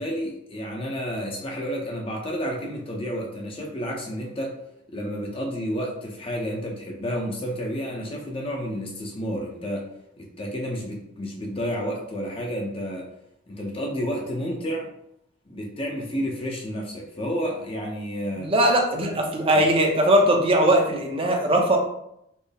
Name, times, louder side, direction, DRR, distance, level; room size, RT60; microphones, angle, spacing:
voice 1, 0.0-4.6 4.9-9.9 10.2-13.1 13.5-14.9 15.5-18.5 19.5-19.7, equal, 30° left, -1 dB, 0.6 m, -30 dB
voice 2, 18.4-21.8, right 1 dB, 30° right, 2 dB, 0.6 m, -20 dB
4.3 x 2.0 x 3.4 m, 0.77 s
head